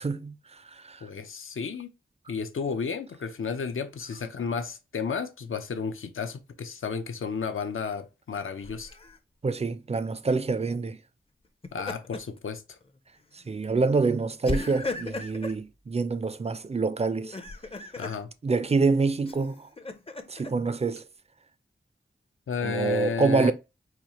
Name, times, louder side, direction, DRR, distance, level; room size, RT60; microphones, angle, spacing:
voice 1, 0.0-1.1 9.4-11.0 13.3-17.4 18.4-19.7 20.3-21.0 22.6-23.5, right 4 dB, 30° right, 0.3 m, -26 dB
voice 2, 1.0-1.9 2.3-8.9 11.7-12.8 18.0-18.3 22.5-23.5, left 5 dB, 75° left, 0.5 m, -32 dB
Laughter, 8.6-9.2 11.4-12.4 12.8-13.0 14.4-15.6 17.1-18.2 19.2-20.5, left 3 dB, 30° left, 0.5 m, -36 dB
4.1 x 2.4 x 2.9 m
wide cardioid pair, 60°, 21 cm